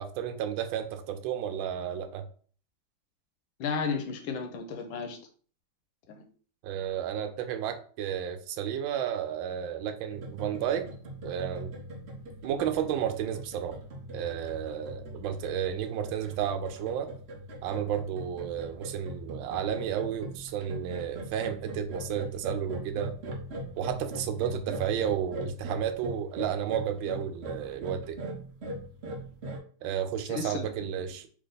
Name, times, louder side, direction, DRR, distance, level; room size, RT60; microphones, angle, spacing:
voice 1, 0.0-2.3 6.6-10.9 11.2-11.7 12.4-13.8 14.1-17.1 17.6-23.1 23.8-28.2 29.8-31.3, right 9 dB, 80° right, 7 dB, 1.3 m, -32 dB
voice 2, 3.6-5.2 6.1-6.2 30.3-30.9, left 5 dB, 85° left, 4 dB, 1.5 m, -33 dB
sound 1, 10.1-29.6, right 1 dB, 60° right, 0.6 m, -40 dB
3.4 x 3.3 x 3.9 m, 0.43 s
omnidirectional pair, 2.2 m